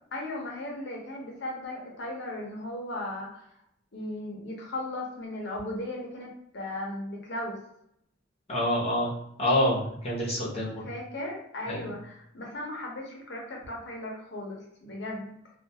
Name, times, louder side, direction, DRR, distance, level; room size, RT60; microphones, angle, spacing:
voice 1, 0.1-3.5 3.9-7.6 10.5-15.3, left 1 dB, 65° left, -1 dB, 0.8 m, -37 dB
voice 2, 8.5-9.1 9.4-10.8 11.7-11.9, left 1 dB, 35° left, -6 dB, 0.9 m, -27 dB
2.4 x 2.3 x 2.7 m, 0.76 s
head